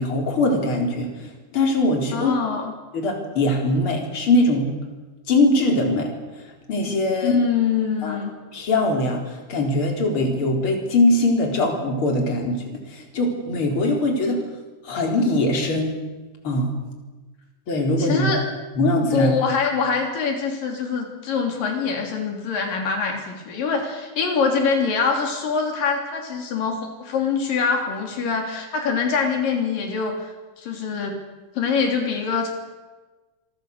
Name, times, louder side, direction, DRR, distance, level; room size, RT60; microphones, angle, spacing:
voice 1, 0.0-2.3 2.9-4.7 5.3-6.1 6.4-7.3 8.0-8.2 8.5-14.4 14.8-15.9 16.4-16.7 17.7-18.3 18.7-19.3, left 2 dB, 40° left, 1 dB, 4.9 m, -21 dB
voice 2, 2.1-2.7 7.2-8.3 18.0-18.4 19.1-31.2 31.6-32.5, left 5 dB, 85° left, 2 dB, 5.0 m, -24 dB
27.5 x 23.5 x 6.7 m, 1.2 s
omnidirectional pair, 3.8 m